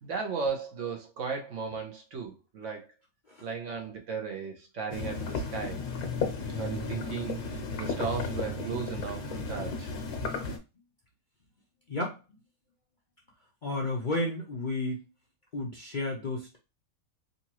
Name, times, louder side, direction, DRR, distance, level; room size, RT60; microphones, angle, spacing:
voice 1, 0.0-2.9 3.4-5.8 6.6-9.9, right 5 dB, 60° right, 1.1 m, -36 dB
sound 1, 4.9-10.6, left 4 dB, 85° left, 1.5 m, -34 dB
voice 2, 11.9-12.2 13.6-15.0 15.5-16.6, left 2 dB, 45° left, 0.6 m, -32 dB
3.9 x 2.5 x 2.9 m
omnidirectional pair, 1.6 m